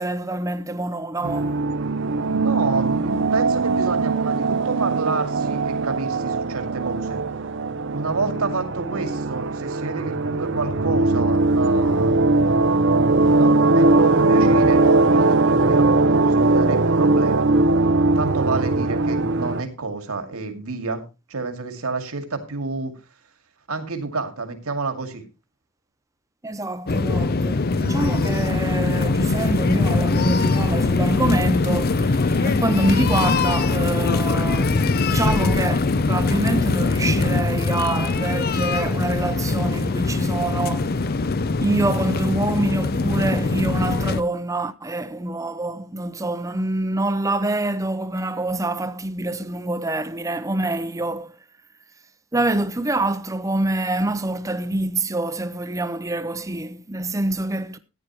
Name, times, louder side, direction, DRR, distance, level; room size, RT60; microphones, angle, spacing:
voice 1, 0.0-1.6 26.4-41.1 41.6-51.3 52.3-57.8, right 2 dB, 15° right, 0.7 m, -26 dB
sound 1, 1.2-19.6, right 2 dB, 55° right, 0.6 m, -20 dB
voice 2, 2.2-7.2 7.9-12.4 13.2-17.5 18.2-21.0 21.3-22.9 23.7-25.2, right 3 dB, 85° right, 2.3 m, -29 dB
sound 2, 26.9-44.2, left 3 dB, 45° left, 0.5 m, -22 dB
14.5 x 10.0 x 3.0 m
head